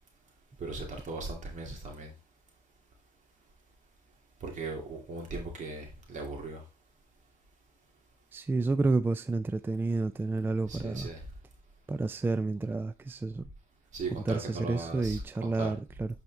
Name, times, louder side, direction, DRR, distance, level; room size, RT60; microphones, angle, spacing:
voice 1, 0.6-2.1 4.4-6.6 10.7-11.2 13.9-15.7, right 3 dB, 45° right, 2.2 m, -38 dB
voice 2, 8.3-11.1 11.9-13.5 14.1-16.1, right 3 dB, 10° right, 0.4 m, -30 dB
8.9 x 4.3 x 3.3 m
cardioid pair, 110°, 17 cm